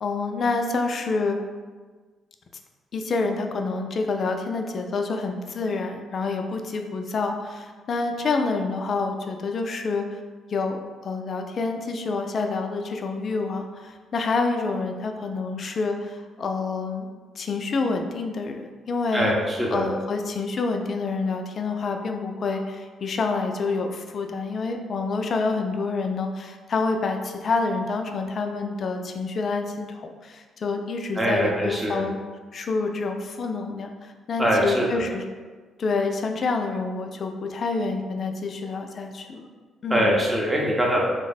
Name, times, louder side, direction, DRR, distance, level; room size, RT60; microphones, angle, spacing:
voice 1, 0.0-1.4 2.9-10.0 10.5-17.1 17.4-19.3 19.7-32.2 32.5-35.2 35.8-39.5 39.8-40.1, left 3 dB, 50° left, 4 dB, 0.3 m, -27 dB
voice 2, 19.1-19.9 31.2-32.0 34.4-35.0 39.9-41.1, equal, 10° right, -3 dB, 0.7 m, -23 dB
3.4 x 2.0 x 4.0 m, 1.4 s
cardioid pair, 90°, 0 cm